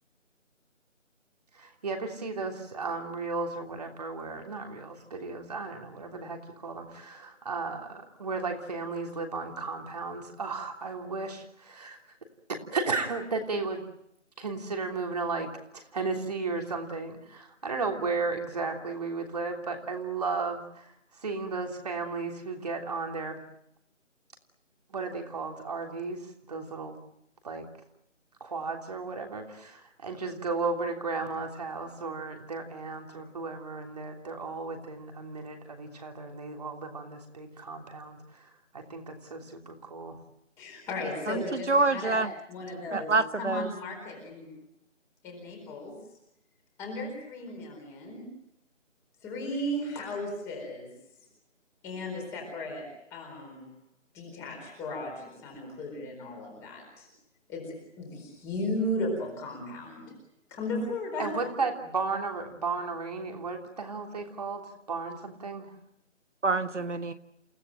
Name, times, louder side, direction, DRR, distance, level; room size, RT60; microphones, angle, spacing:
voice 1, 1.5-12.0 12.5-13.8 14.4-23.4 24.9-27.0 27.4-27.7 28.4-40.2 61.2-65.7, right 4 dB, 30° right, 3 dB, 3.2 m, -34 dB
voice 2, 40.6-42.2 42.5-44.5 45.2-46.0 46.8-48.3 49.2-50.9 51.8-52.8 53.1-53.7 54.1-57.1 57.5-57.7 58.0-60.1 60.5-61.5, left 1 dB, 5° left, 1 dB, 4.4 m, -35 dB
voice 3, 41.7-42.3 42.9-43.7 66.4-67.1, right 3 dB, 65° right, 9 dB, 1.4 m, -26 dB
29.5 x 17.5 x 9.0 m, 0.77 s
figure-of-eight pair, 170°, 38 cm